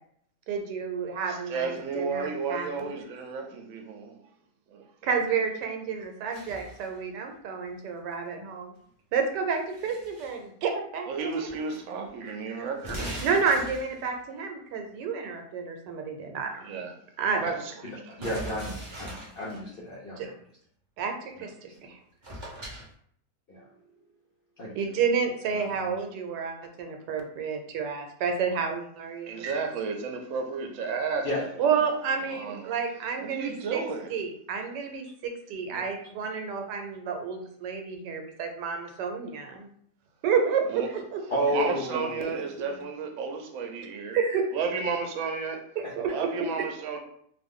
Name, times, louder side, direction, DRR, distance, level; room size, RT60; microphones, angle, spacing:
voice 1, 0.5-2.9 5.0-8.7 9.1-11.5 12.2-12.4 13.2-16.6 17.2-17.4 20.2-20.3 21.0-21.5 24.8-29.5 31.6-33.8 34.1-39.7 40.2-41.0 44.1-44.4 46.0-46.3, right 6 dB, 90° right, 1.2 m, -30 dB
voice 2, 1.3-4.2 4.7-5.2 11.1-13.2 16.6-17.0 17.3-18.1 29.3-31.5 32.2-32.7 33.2-34.2 40.7-40.9 41.5-44.2 44.5-45.6 46.0-47.0, right 5 dB, 65° right, 0.8 m, -33 dB
sound 1, 6.3-7.0 9.3-10.4 11.3-11.8 12.1-12.2 12.7-14.1 18.2-19.6 21.7-21.8 22.2-22.9, right 1 dB, 35° right, 0.4 m, -39 dB
voice 3, 17.8-18.7 19.0-20.3 21.3-21.5 23.5-23.7 24.6-24.8 25.5-26.0 31.2-31.4 35.7-35.9 41.3-42.2 42.7-42.9 45.8-46.2, equal, 65° left, 0.5 m, -32 dB
2.5 x 2.5 x 3.5 m
omnidirectional pair, 1.8 m